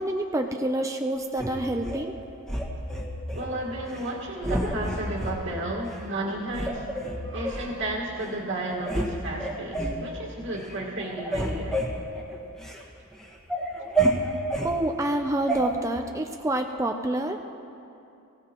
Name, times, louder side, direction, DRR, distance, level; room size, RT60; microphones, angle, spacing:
voice 1, 0.0-2.1 14.6-17.4, right 1 dB, 15° right, 4 dB, 0.5 m, -27 dB
sound 1, 1.4-2.0 2.5-3.5 3.9-4.1 4.4-5.4 5.9-6.0 6.5-7.7 8.3-8.4 8.6-9.1 9.4-10.0 10.5-10.7 11.0-12.8 13.2-14.7 15.5-15.6, right 1 dB, ahead, 1.6 m, -29 dB
voice 2, 3.3-11.8, right 1 dB, 60° right, -4 dB, 1.8 m, -33 dB
23.5 x 16.0 x 3.0 m, 2.7 s
head